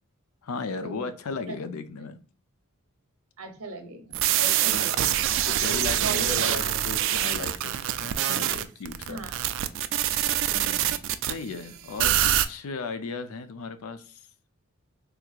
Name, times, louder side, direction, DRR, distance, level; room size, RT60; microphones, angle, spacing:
voice 1, 0.4-2.2 4.4-4.9 5.3-9.2 11.3-14.2, left 4 dB, 80° left, 0.5 m, -36 dB
voice 2, 3.4-5.1 5.7-7.1 9.1-9.4 10.5-11.0, right 2 dB, 85° right, 0.9 m, -38 dB
sound 1, 4.1-11.3 12.0-12.4, right 12 dB, 60° right, 0.3 m, -25 dB
3.4 x 3.1 x 2.3 m
head